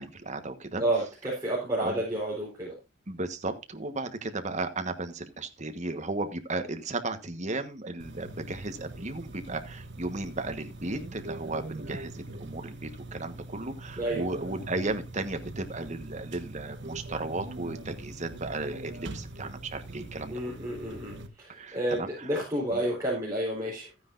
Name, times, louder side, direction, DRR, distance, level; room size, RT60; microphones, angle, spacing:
voice 1, 0.0-0.8 1.8-2.0 3.1-20.5 21.5-22.3 22.7-22.8, right 2 dB, 35° right, 8 dB, 1.2 m, -35 dB
voice 2, 0.8-2.7 14.0-14.2 20.3-21.1 21.7-23.9, right 1 dB, 15° right, -5 dB, 4.1 m, -30 dB
sound 1, 8.0-21.3, right 2 dB, 60° right, 1.2 m, -42 dB
14.0 x 9.6 x 2.5 m, 0.24 s
head